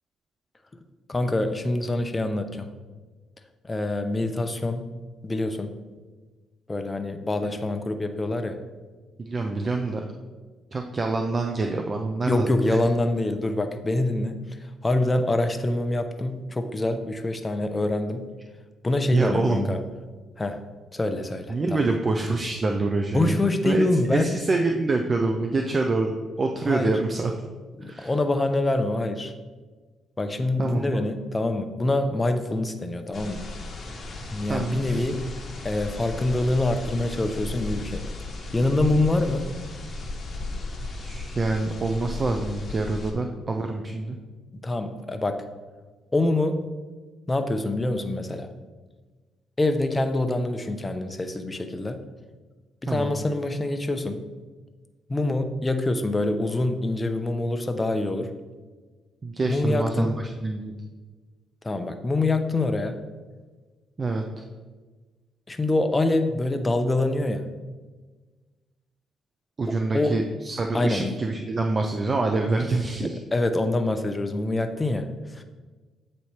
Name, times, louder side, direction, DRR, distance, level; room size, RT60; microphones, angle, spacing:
voice 1, 1.1-2.7 3.6-4.9 5.2-5.7 6.7-8.6 12.2-14.6 14.8-18.3 18.8-19.8 20.4-20.6 20.9-21.8 23.1-24.3 26.7-26.9 27.8-29.3 30.2-33.5 34.3-35.2 35.6-38.0 38.5-39.5 44.6-45.4 46.1-46.7 47.3-48.5 49.6-52.0 52.8-54.3 55.1-58.3 59.5-60.1 61.6-63.0 65.5-67.5 69.9-70.2 70.7-71.2 73.0-75.4, left 2 dB, 20° left, 7 dB, 0.6 m, -25 dB
voice 2, 9.2-10.0 10.7-12.8 19.1-19.8 21.5-23.8 24.1-27.3 27.9-28.1 30.6-31.1 34.5-35.1 41.0-44.2 52.9-53.2 59.2-60.7 64.0-64.2 69.6-73.2, right 3 dB, 35° right, 3 dB, 0.5 m, -26 dB
sound 1, 33.1-43.1, left 2 dB, 40° left, 1.2 m, -35 dB
8.1 x 3.2 x 4.3 m, 1.3 s
cardioid pair, 90°, 0 cm